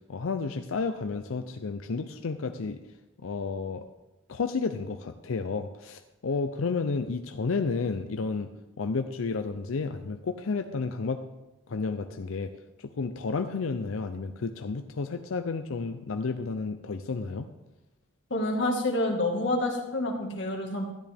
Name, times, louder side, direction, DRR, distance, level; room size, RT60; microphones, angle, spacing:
voice 1, 0.1-2.8 3.2-3.8 4.3-8.5 8.8-11.2 11.7-12.5 12.8-17.5, left 4 dB, 85° left, 8 dB, 0.5 m, -31 dB
voice 2, 18.3-20.9, left 1 dB, 65° left, 1 dB, 1.8 m, -28 dB
13.0 x 10.5 x 3.5 m, 1.0 s
head